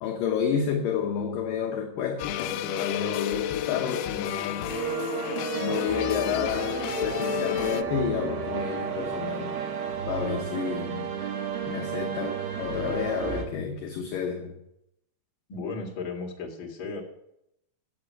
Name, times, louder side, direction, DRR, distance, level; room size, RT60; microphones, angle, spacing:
voice 1, 0.0-4.7 5.5-9.6 10.1-11.1 11.7-14.6, left 7 dB, 75° left, 2.1 m, -30 dB
sound 1, 2.2-7.8, left 12 dB, 90° left, 2.0 m, -32 dB
sound 2, 4.7-13.4, right 8 dB, 65° right, 3.0 m, -32 dB
voice 2, 15.5-17.0, left 4 dB, 35° left, 2.3 m, -35 dB
9.3 x 7.6 x 8.7 m
omnidirectional pair, 5.1 m